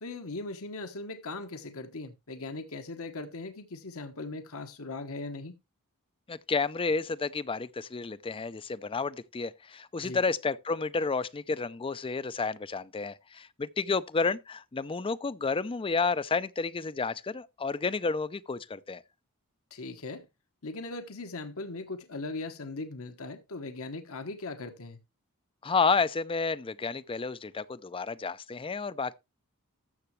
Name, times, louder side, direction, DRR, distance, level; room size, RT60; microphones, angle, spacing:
voice 1, 0.0-5.5 10.0-10.2 19.7-20.3 20.6-25.0, left 3 dB, 65° left, 1.2 m, -39 dB
voice 2, 6.3-19.0 25.6-29.2, left 4 dB, 25° left, 0.5 m, -31 dB
13.5 x 6.9 x 3.2 m
head